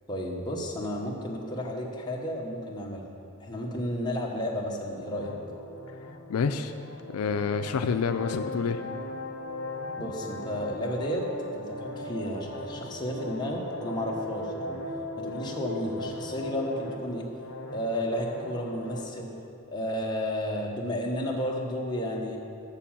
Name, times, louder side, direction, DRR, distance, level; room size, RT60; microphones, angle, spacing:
voice 1, 0.1-3.1 3.4-5.3 10.0-11.3 11.5-14.8 15.2-17.3 17.7-19.3 19.7-22.4, equal, 20° left, -2 dB, 1.1 m, -32 dB
sound 1, 5.0-19.0, left 1 dB, 65° left, 1.1 m, -38 dB
voice 2, 6.3-6.7 7.1-8.8 10.0-10.1, left 5 dB, 85° left, 8 dB, 0.4 m, -28 dB
7.1 x 6.9 x 7.3 m, 2.5 s
head